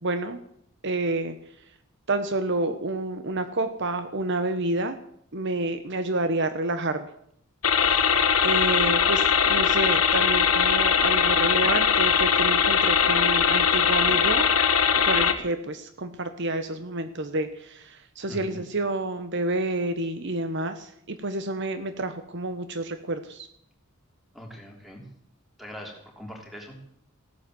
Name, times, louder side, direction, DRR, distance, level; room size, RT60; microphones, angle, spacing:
voice 1, 0.0-0.4 0.8-1.3 2.1-5.0 5.3-7.1 7.8-8.1 8.4-14.5 15.0-23.5, right 2 dB, 55° right, 9 dB, 1.1 m, -29 dB
sound 1, 7.6-15.3, left 7 dB, 85° left, 1.6 m, -21 dB
voice 2, 18.3-18.6 24.3-25.0 25.6-27.0, equal, ahead, 1 dB, 3.4 m, -42 dB
16.0 x 10.0 x 7.7 m, 0.69 s
head